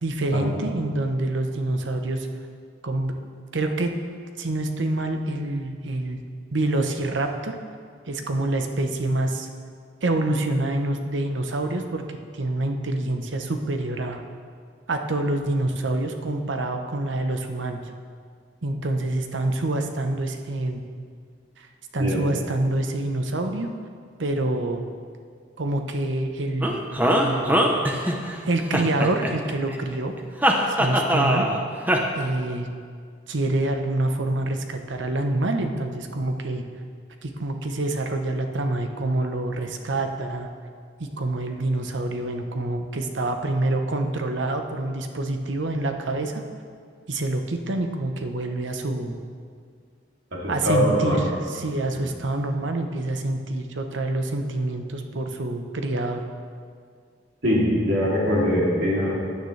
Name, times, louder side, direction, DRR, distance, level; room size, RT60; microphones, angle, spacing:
voice 1, 0.0-2.3 2.8-3.2 3.5-3.9 4.4-6.2 6.5-7.6 8.1-9.5 10.0-14.2 14.9-17.8 18.6-20.8 21.6-21.7 21.9-23.7 24.2-24.8 25.6-27.6 28.4-30.1 30.7-31.5 32.1-32.7 33.3-36.6 37.2-40.5 41.0-46.4 47.1-49.2 50.5-56.2, right 2 dB, 85° right, 5 dB, 0.9 m, -26 dB
sound 1, 26.6-28.4 28.7-29.8 30.4-31.6 31.9-32.0, equal, 10° right, 0.8 m, -21 dB
voice 2, 50.4-51.2 57.4-59.2, equal, 70° right, -5 dB, 2.8 m, -22 dB
15.5 x 9.6 x 3.3 m, 2.1 s
head